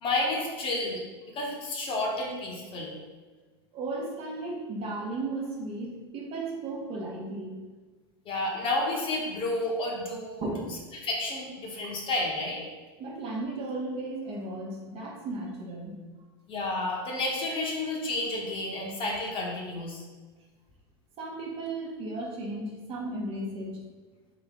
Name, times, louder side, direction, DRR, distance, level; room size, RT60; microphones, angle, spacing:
voice 1, 0.0-2.9 8.2-10.4 11.0-12.6 16.5-20.0, left 2 dB, 40° left, -1 dB, 1.0 m, -31 dB
voice 2, 3.7-7.5 10.4-10.7 11.8-11.9 13.0-16.0 21.2-23.8, right 2 dB, 45° right, -1 dB, 0.9 m, -35 dB
3.8 x 2.7 x 3.5 m, 1.3 s
hypercardioid pair, 100°, 14 cm